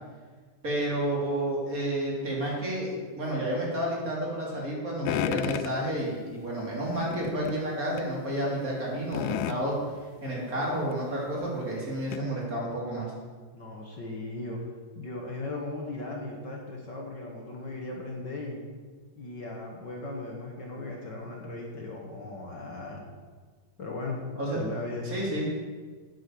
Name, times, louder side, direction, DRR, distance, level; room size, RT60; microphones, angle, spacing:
voice 1, 0.6-9.8 10.2-13.1 24.4-24.6 25.0-25.5, right 1 dB, 25° right, -3 dB, 3.1 m, -30 dB
sound 1, 5.0-5.8 7.0-7.6 8.0-8.1 9.1-9.6 10.9-11.0 11.4-11.5 12.1-12.2, left 12 dB, 80° left, 2.0 m, -31 dB
voice 2, 13.5-14.6 14.9-18.6 19.1-23.0 23.8-24.2 24.5-25.1, left 2 dB, 45° left, -1 dB, 1.5 m, -37 dB
10.0 x 9.2 x 6.9 m, 1.5 s
omnidirectional pair, 3.8 m